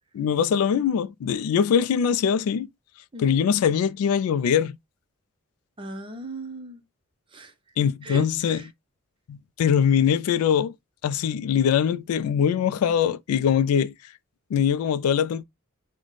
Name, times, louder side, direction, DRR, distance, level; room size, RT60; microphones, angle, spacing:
voice 1, 0.1-2.7 3.2-4.8 7.8-8.6 9.3-10.7 11.0-14.1 14.5-15.4, left 8 dB, 90° left, 0.3 m, -22 dB
voice 2, 5.8-6.8 7.3-7.5 8.0-8.7, right 2 dB, 25° right, 0.6 m, -38 dB
4.0 x 2.1 x 3.0 m
head